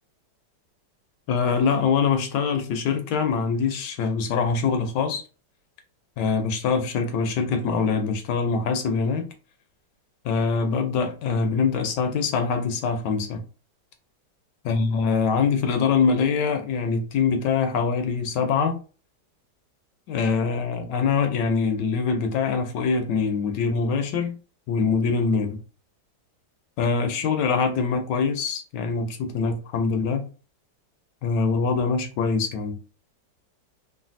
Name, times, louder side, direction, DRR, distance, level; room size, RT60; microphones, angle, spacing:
voice 1, 1.3-5.2 6.2-9.3 10.2-13.4 14.6-18.8 20.1-24.4 24.7-25.6 26.8-30.3 31.2-32.8, left 5 dB, 80° left, 1.2 m, -24 dB
3.2 x 2.5 x 2.5 m
omnidirectional pair, 1.9 m